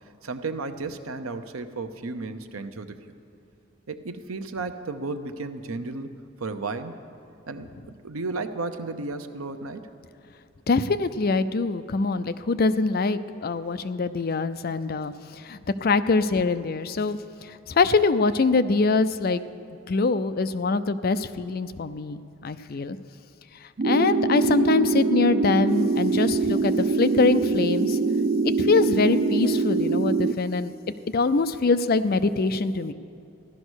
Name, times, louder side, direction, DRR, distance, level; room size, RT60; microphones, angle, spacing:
voice 1, 0.2-3.1 3.9-6.1 6.4-6.9 7.5-9.9, right 3 dB, 90° right, 8 dB, 0.8 m, -33 dB
voice 2, 10.7-19.4 19.9-23.0 23.8-28.0 28.6-30.7 31.1-32.9, left 3 dB, 45° left, 12 dB, 0.5 m, -24 dB
sound 1, 23.8-30.3, right 3 dB, 40° right, 0.4 m, -23 dB
15.0 x 12.0 x 6.4 m, 2.6 s
head